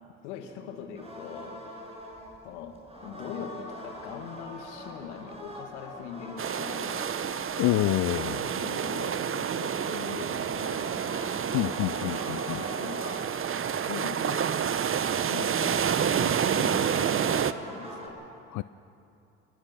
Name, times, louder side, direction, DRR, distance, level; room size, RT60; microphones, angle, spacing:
voice 1, 0.2-1.7 2.4-7.3 8.5-11.4 12.5-13.3 13.6-14.5 15.1-18.4, left 7 dB, 85° left, 5 dB, 2.2 m, -42 dB
sound 1, 1.0-18.1, equal, 15° right, 6.8 m, -44 dB
sound 2, 6.4-17.5, right 8 dB, 40° right, 0.9 m, -29 dB
voice 2, 7.6-8.6 11.5-12.6 18.5-18.6, left 17 dB, 60° left, 16 dB, 0.5 m, -27 dB
26.5 x 19.5 x 6.0 m, 2.8 s
hypercardioid pair, 55°, 34 cm